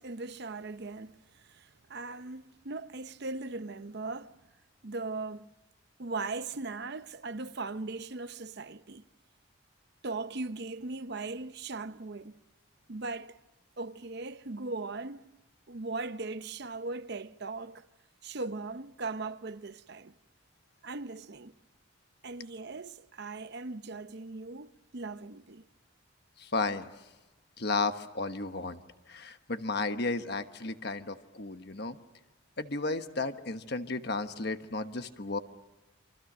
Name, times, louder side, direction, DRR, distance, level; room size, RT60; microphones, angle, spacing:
voice 1, 0.0-4.4 4.8-5.5 6.0-9.0 10.0-12.4 12.9-13.4 13.8-15.3 15.7-17.8 18.2-20.1 20.8-21.5 22.2-25.6, right 3 dB, 55° right, 0.8 m, -39 dB
voice 2, 26.4-26.9 27.6-28.8 29.1-32.0 32.6-35.4, left 3 dB, 50° left, 1.3 m, -33 dB
29.5 x 24.5 x 6.2 m
head